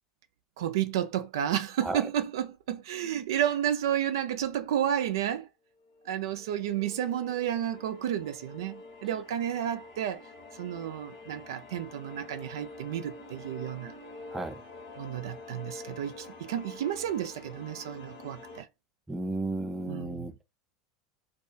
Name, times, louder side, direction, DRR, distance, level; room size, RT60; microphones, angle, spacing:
voice 1, 0.6-5.5 6.1-10.3 10.6-13.9 15.0-18.7 19.9-20.3, right 10 dB, 75° right, 0.3 m, -31 dB
sound 1, 5.8-18.6, left 3 dB, 75° left, 1.0 m, -47 dB
voice 2, 19.1-20.4, right 2 dB, 10° right, 0.4 m, -34 dB
2.3 x 2.2 x 2.4 m
hypercardioid pair, 85°, 2 cm